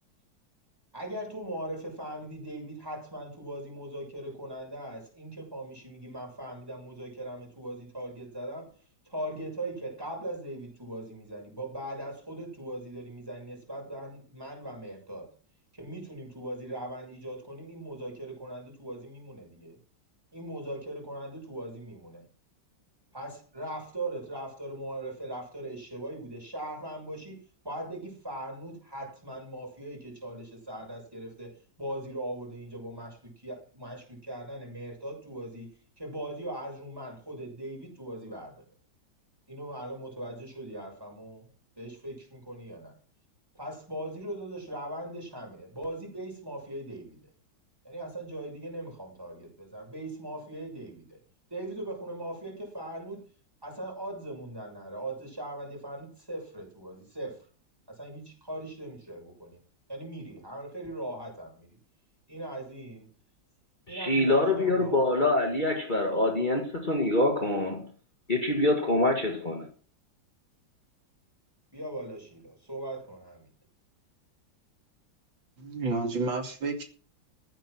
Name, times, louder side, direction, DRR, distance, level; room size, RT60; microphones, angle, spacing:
voice 1, 0.9-8.7 9.0-15.3 15.7-19.8 20.3-22.2 23.1-27.4 27.6-31.5 31.8-35.7 36.0-38.6 39.5-41.5 41.8-42.9 43.5-47.2 47.8-51.2 51.5-53.2 53.6-57.4 57.9-59.6 59.9-61.8 62.3-63.0 63.9-65.0 71.7-73.5, right 1 dB, 10° right, 6.5 m, -39 dB
voice 2, 63.9-67.9 68.3-69.7, left 2 dB, 25° left, 2.0 m, -25 dB
voice 3, 75.6-76.8, right 3 dB, 85° right, 3.3 m, -30 dB
15.0 x 9.3 x 6.3 m
omnidirectional pair, 2.0 m